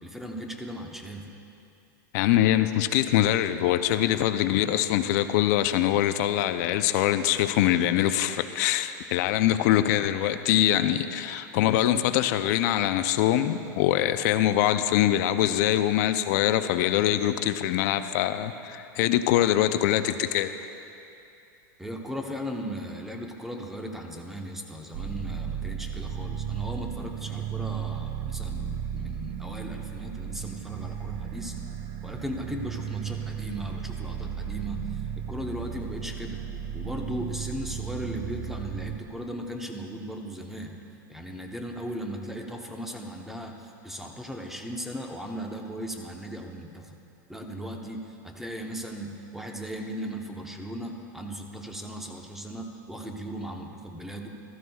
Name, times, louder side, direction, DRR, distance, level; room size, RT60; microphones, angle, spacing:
voice 1, 0.0-1.3 21.8-31.5 32.0-36.4 36.7-40.8 41.1-47.0 47.3-54.3, equal, 5° right, 2 dB, 0.9 m, -37 dB
voice 2, 2.1-20.5, left 12 dB, 55° left, 11 dB, 0.5 m, -23 dB
sound 1, 24.9-39.0, right 8 dB, 45° right, 0.6 m, -35 dB
15.0 x 14.0 x 2.3 m, 2.7 s
supercardioid pair, 130°, 11 cm